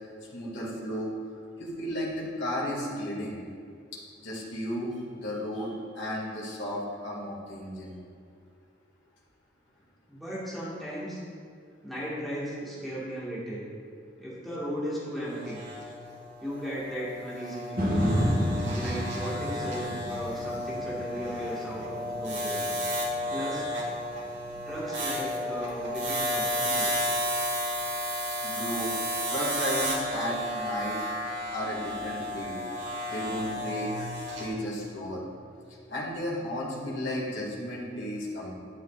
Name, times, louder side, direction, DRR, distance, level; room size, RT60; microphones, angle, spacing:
voice 1, 0.3-3.4 4.2-7.9 28.4-28.9 29.3-31.0 31.5-32.5 33.1-34.1 34.4-35.2 35.9-38.5, equal, 65° left, -5 dB, 2.0 m, -34 dB
voice 2, 10.1-11.2 11.8-13.7 14.2-15.6 16.4-18.1 18.7-22.6 23.3-23.7 24.7-26.9, equal, ahead, -9 dB, 1.6 m, -36 dB
sound 1, 15.2-34.5, equal, 75° right, 1.7 m, -33 dB
sound 2, 17.8-25.9 26.4-26.5, equal, 50° right, 1.3 m, -32 dB
11.0 x 8.1 x 2.4 m, 2.3 s
head